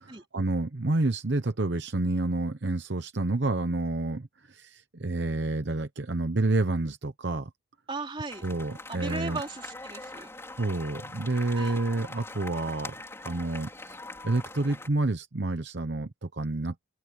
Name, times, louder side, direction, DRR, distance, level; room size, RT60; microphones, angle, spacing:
voice 1, 0.0-7.5 8.4-9.4 10.6-13.0 13.2-14.0 14.2-16.7, right 2 dB, 60° right, 0.9 m, -29 dB
voice 2, 7.9-8.5 8.9-10.3 11.6-11.8, right 3 dB, 25° right, 3.4 m, -36 dB
sound 1, 8.3-14.9, left 2 dB, 15° left, 4.9 m, -42 dB
open air
head